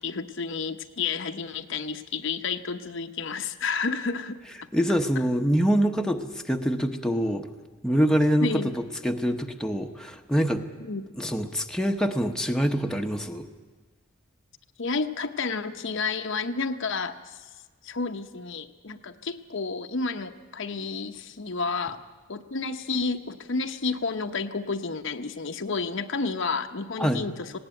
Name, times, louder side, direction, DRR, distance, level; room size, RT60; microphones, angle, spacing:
voice 1, 0.0-4.4 8.4-8.7 10.8-11.1 14.8-17.4 17.8-22.0 22.3-27.5, left 4 dB, 60° left, 7 dB, 0.9 m, -30 dB
voice 2, 4.7-7.5 7.8-8.6 9.0-10.6 11.2-13.4 27.0-27.3, equal, 5° left, 3 dB, 1.0 m, -25 dB
19.5 x 17.5 x 9.1 m, 1.3 s
head